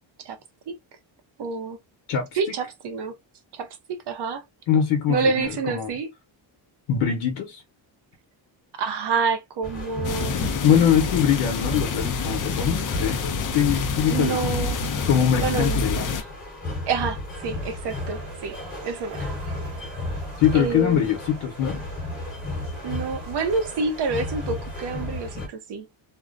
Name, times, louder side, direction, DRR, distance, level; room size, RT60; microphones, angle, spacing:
voice 1, 1.4-1.8 2.3-3.2 3.5-4.4 5.1-6.1 8.7-10.7 14.1-14.8 15.4-15.8 16.9-18.6 18.8-19.3 20.5-21.1 22.8-25.9, right 4 dB, 55° right, 0.7 m, -28 dB
voice 2, 2.1-2.5 4.7-5.9 6.9-7.6 10.6-14.6 15.1-16.2 20.4-21.8, left 8 dB, 90° left, 0.8 m, -23 dB
sound 1, 9.6-25.5, left 2 dB, 20° left, 1.0 m, -34 dB
sound 2, 10.0-16.2, left 4 dB, 40° left, 0.5 m, -27 dB
sound 3, 17.4-25.3, right 5 dB, 75° right, 1.3 m, -44 dB
2.6 x 2.0 x 2.4 m
cardioid pair, 130°, 48 cm